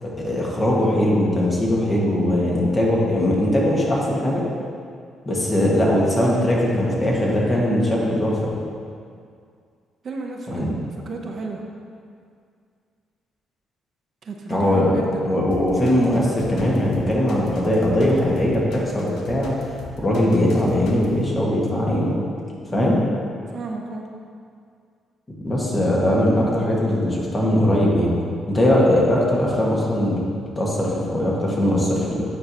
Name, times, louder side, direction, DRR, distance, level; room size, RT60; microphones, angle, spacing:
voice 1, 0.0-4.4 5.2-8.5 10.5-10.7 14.5-15.0 15.2-19.5 20.0-22.1 22.7-23.0 25.4-28.1 28.5-30.2 30.6-32.2, left 1 dB, 30° left, -4 dB, 1.4 m, -20 dB
voice 2, 10.0-11.6 14.2-15.5 22.7-22.9 23.5-24.1, right 3 dB, 55° right, 1 dB, 0.6 m, -32 dB
sound 1, 15.5-21.2, left 3 dB, 80° left, 0.7 m, -39 dB
8.8 x 4.6 x 2.8 m, 2.3 s
cardioid pair, 90°, 0 cm